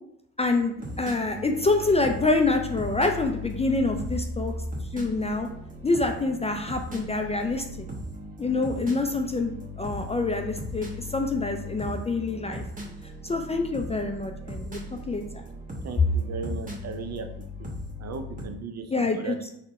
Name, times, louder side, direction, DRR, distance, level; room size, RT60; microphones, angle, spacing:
voice 1, 0.4-4.5 4.9-5.5 5.8-7.9 8.4-12.6 13.2-14.8 15.1-15.4 18.9-19.4, left 3 dB, 20° left, 4 dB, 0.3 m, -26 dB
sound 1, 0.8-18.4, left 1 dB, 20° right, 1.0 m, -38 dB
voice 2, 15.8-17.3 17.6-17.7 18.0-19.5, right 5 dB, 45° right, 7 dB, 0.5 m, -36 dB
4.0 x 2.2 x 4.1 m, 0.76 s
supercardioid pair, 65°, 36 cm